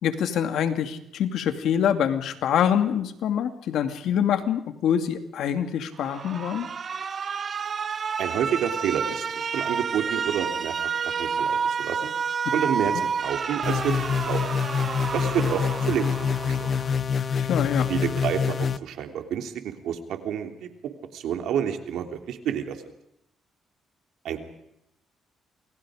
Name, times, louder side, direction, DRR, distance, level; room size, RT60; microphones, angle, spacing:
voice 1, 0.0-6.7 12.9-13.0 17.4-17.9, left 9 dB, 75° left, 8 dB, 2.5 m, -25 dB
Alarm, 6.0-17.0, right 6 dB, 45° right, 0.9 m, -30 dB
voice 2, 8.2-10.8 11.0-12.1 12.5-14.0 14.2-14.4 15.1-16.7 17.9-20.7 21.1-22.8 24.2-24.4, right 9 dB, 80° right, 6 dB, 3.2 m, -29 dB
sound 1, 13.6-18.8, left 6 dB, 45° left, 0.8 m, -26 dB
28.5 x 22.5 x 5.1 m, 0.81 s
cardioid pair, 90°, 0 cm